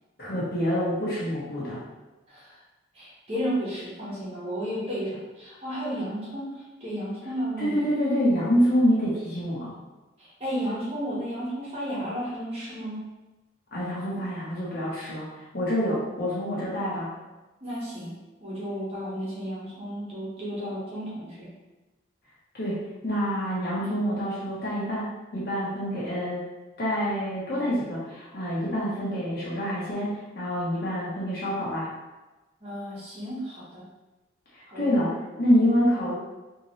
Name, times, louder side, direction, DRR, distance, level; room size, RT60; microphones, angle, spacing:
voice 1, 0.2-1.8 7.6-9.7 13.7-17.1 22.5-26.4 26.8-31.9 34.5-36.1, equal, 55° left, -8 dB, 0.9 m, -26 dB
voice 2, 2.3-2.6 2.9-7.8 10.2-13.0 17.6-18.1 18.4-21.5 32.6-33.9 34.7-34.9, equal, 30° right, -7 dB, 1.2 m, -33 dB
3.6 x 2.8 x 3.0 m, 1.1 s
head